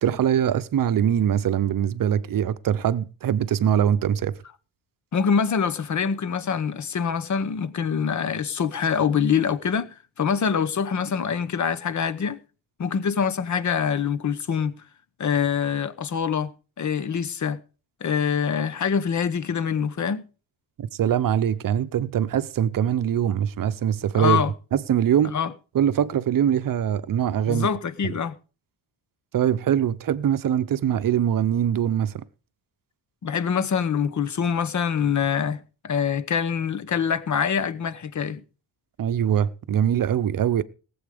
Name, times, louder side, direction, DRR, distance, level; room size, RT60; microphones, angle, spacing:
voice 1, 0.0-4.4 20.8-24.4 24.7-25.3 25.7-27.7 29.3-32.2 39.0-40.6, right 9 dB, 45° right, 0.8 m, -22 dB
voice 2, 5.1-12.4 12.8-14.8 15.2-16.5 16.8-17.6 18.0-20.2 24.1-24.5 25.3-25.5 27.5-28.4 33.2-38.4, left 7 dB, 40° left, 1.0 m, -25 dB
18.5 x 8.0 x 5.0 m
wide cardioid pair, 160°, 45 cm